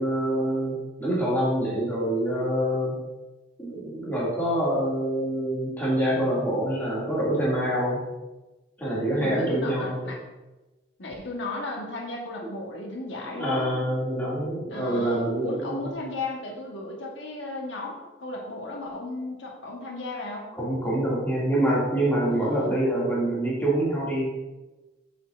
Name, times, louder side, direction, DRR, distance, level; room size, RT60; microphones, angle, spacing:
voice 1, 0.0-3.0 3.6-8.0 8.8-10.1 13.2-15.9 20.6-24.3, right 1 dB, 10° left, -7 dB, 2.2 m, -26 dB
voice 2, 9.2-10.2 11.0-13.7 14.7-20.5 22.3-22.8, left 2 dB, 90° left, 0 dB, 1.2 m, -35 dB
7.2 x 6.5 x 2.5 m, 1.1 s
head